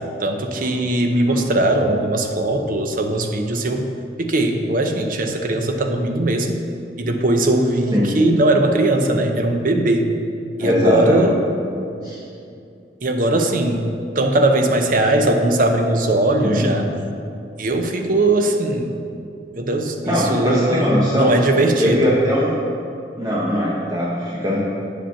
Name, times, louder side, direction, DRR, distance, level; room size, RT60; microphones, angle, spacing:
voice 1, 0.2-3.9 4.2-6.6 7.0-10.1 10.6-11.4 13.0-13.9 14.2-16.9 17.6-19.0 19.6-22.1, right 1 dB, 50° right, 4 dB, 0.7 m, -19 dB
voice 2, 10.6-11.3 12.0-12.2 16.4-16.7 20.1-21.3 21.8-22.5 23.2-24.6, equal, 20° right, -6 dB, 0.9 m, -20 dB
8.4 x 5.1 x 5.7 m, 2.6 s
head